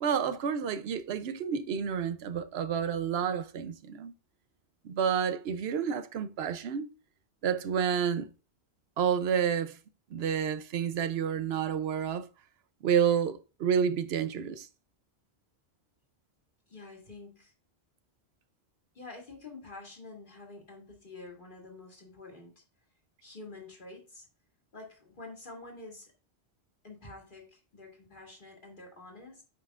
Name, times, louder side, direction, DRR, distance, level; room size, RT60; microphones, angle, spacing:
voice 1, 0.0-4.1 4.8-6.9 7.4-8.3 9.0-9.8 10.1-12.3 12.8-14.7, right 7 dB, 75° right, 0.8 m, -29 dB
voice 2, 16.7-17.5 18.9-22.6 23.2-24.3 24.7-26.1 26.8-29.4, left 3 dB, 50° left, 2.2 m, -48 dB
8.5 x 5.5 x 2.4 m
omnidirectional pair, 1.1 m